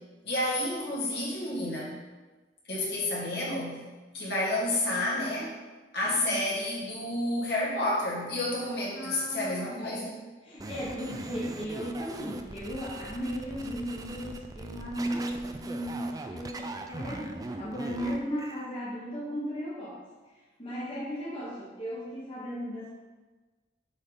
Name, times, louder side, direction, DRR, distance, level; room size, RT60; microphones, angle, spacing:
voice 1, 0.2-2.0 2.7-3.8 4.1-5.5 5.9-10.2, left 1 dB, 65° left, -5 dB, 1.5 m, -30 dB
voice 2, 6.0-6.4 8.9-10.0 10.4-20.0 20.6-22.9, equal, 30° left, -6 dB, 1.1 m, -36 dB
sound 1, 10.6-18.7, right 2 dB, 20° right, 0.3 m, -41 dB
7.7 x 3.7 x 3.7 m, 1.3 s
head